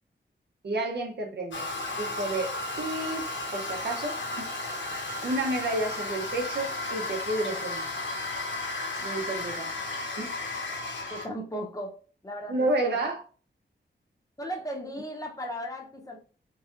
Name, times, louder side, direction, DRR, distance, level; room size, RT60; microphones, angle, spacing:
voice 1, 0.6-1.7 2.0-4.5 5.2-7.9 9.0-9.9 10.2-10.3 12.5-13.2, right 2 dB, 60° right, 2 dB, 0.8 m, -31 dB
Toilet flush, 1.5-11.3, left 2 dB, 85° left, 1.0 m, -34 dB
voice 2, 11.1-11.9 12.2-13.1 14.4-16.2, equal, 20° left, 0 dB, 0.7 m, -36 dB
3.8 x 3.1 x 2.4 m, 0.38 s
wide cardioid pair, 160°, 19 cm